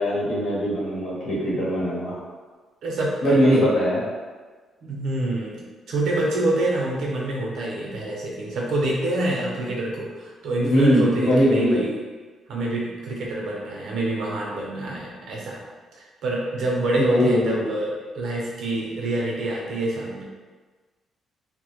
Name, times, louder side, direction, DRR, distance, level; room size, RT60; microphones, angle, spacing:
voice 1, 0.0-2.2 3.2-4.0 10.6-11.9 16.9-17.6, equal, 65° left, -8 dB, 1.0 m, -21 dB
voice 2, 2.8-3.6 4.8-5.6 5.9-12.0 12.5-15.6 16.0-20.2, right 1 dB, 75° right, -3 dB, 0.6 m, -26 dB
2.1 x 2.0 x 3.0 m, 1.4 s
cardioid pair, 90°, 0 cm